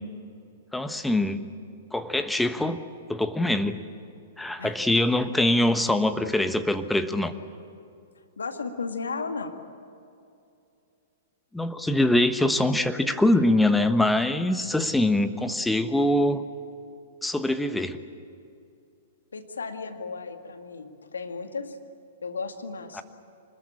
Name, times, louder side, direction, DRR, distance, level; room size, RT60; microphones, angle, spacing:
voice 1, 0.7-1.4 1.9-2.8 3.1-3.8 4.4-7.3 11.5-16.4 17.2-18.0 22.9-23.0, left 1 dB, 5° left, 9 dB, 1.2 m, -23 dB
voice 2, 8.4-9.5 19.3-21.8 22.2-23.0, left 4 dB, 80° left, 6 dB, 2.1 m, -34 dB
25.5 x 20.5 x 8.8 m, 2.6 s
hypercardioid pair, 110°, 0 cm